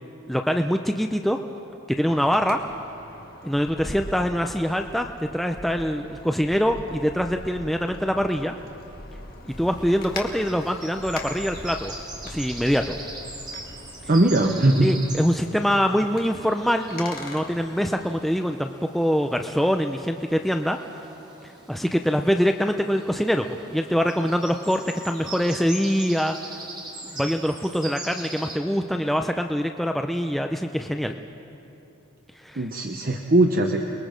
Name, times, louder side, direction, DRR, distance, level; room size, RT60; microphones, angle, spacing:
voice 1, 0.3-1.4 2.0-2.6 3.4-8.5 9.5-11.9 12.2-12.9 14.8-20.8 21.7-26.4 27.1-31.2 32.4-32.6, equal, ahead, 5 dB, 0.5 m, -24 dB
Wind, 2.0-18.1, left 2 dB, 45° left, 2.1 m, -42 dB
sound 1, 9.5-28.6, right 2 dB, 20° right, 2.7 m, -41 dB
voice 2, 14.1-14.9 32.6-33.9, right 1 dB, 40° right, 3 dB, 0.9 m, -20 dB
29.0 x 20.5 x 5.1 m, 2.9 s
head